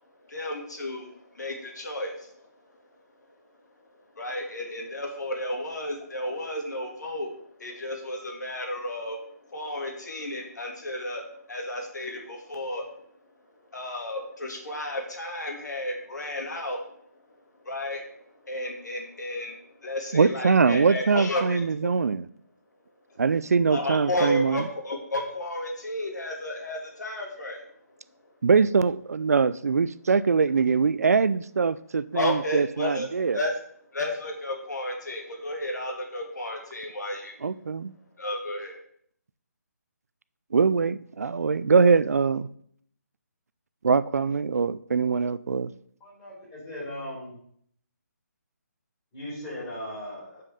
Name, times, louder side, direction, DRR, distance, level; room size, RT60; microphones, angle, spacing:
voice 1, 0.3-2.5 4.2-13.1 13.7-17.3 17.6-21.6 23.7-27.7 32.1-33.1 33.3-33.5 33.9-37.4 38.2-38.8, left 1 dB, 80° left, 2.7 m, -32 dB
voice 2, 20.1-22.3 23.2-24.6 28.4-33.4 37.4-37.9 40.5-42.5 43.8-45.7, right 5 dB, 60° right, 0.4 m, -23 dB
voice 3, 46.0-47.4 49.1-50.4, left 1 dB, 15° left, 4.2 m, -38 dB
7.5 x 5.4 x 6.4 m
hypercardioid pair, 175°, 9 cm